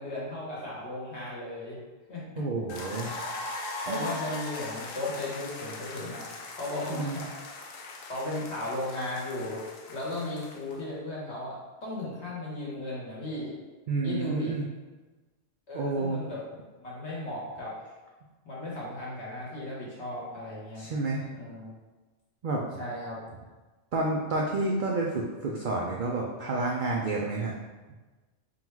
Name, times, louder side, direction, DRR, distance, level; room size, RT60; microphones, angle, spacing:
voice 1, 0.0-1.8 2.1-2.4 3.9-7.3 8.1-9.6 9.9-13.6 14.0-14.5 15.7-16.4 16.8-17.7 18.4-20.9 21.3-21.7 22.8-23.2, left 2 dB, 60° left, -6 dB, 1.4 m, -36 dB
voice 2, 2.4-3.2 3.9-4.2 6.9-7.2 13.9-14.7 15.7-16.2 20.7-21.3 22.4-22.6 23.9-27.5, right 2 dB, 70° right, -2 dB, 0.4 m, -30 dB
sound 1, 2.7-10.8, left 2 dB, 80° left, 1.0 m, -40 dB
3.8 x 2.3 x 4.5 m, 1.2 s
omnidirectional pair, 1.4 m